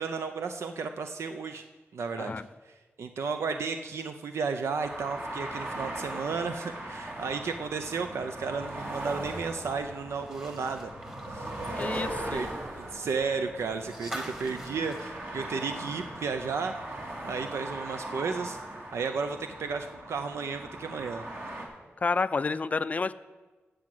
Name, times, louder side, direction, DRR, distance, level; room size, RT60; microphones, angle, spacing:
voice 1, 0.0-1.6 1.9-2.3 3.0-10.9 11.3-11.5 12.3-12.5 12.8-16.7 17.2-18.6 18.9-21.2, right 5 dB, 85° right, 7 dB, 0.6 m, -33 dB
voice 2, 2.2-2.5 11.8-12.5 22.0-23.1, left 4 dB, 35° left, 14 dB, 0.4 m, -30 dB
sound 1, 4.8-21.7, right 1 dB, 60° right, 2.5 m, -39 dB
sound 2, 10.1-16.2 16.5-16.6 18.0-18.1, equal, 15° right, 1.4 m, -45 dB
15.0 x 5.0 x 7.7 m, 1.3 s
wide cardioid pair, 115°, 5 cm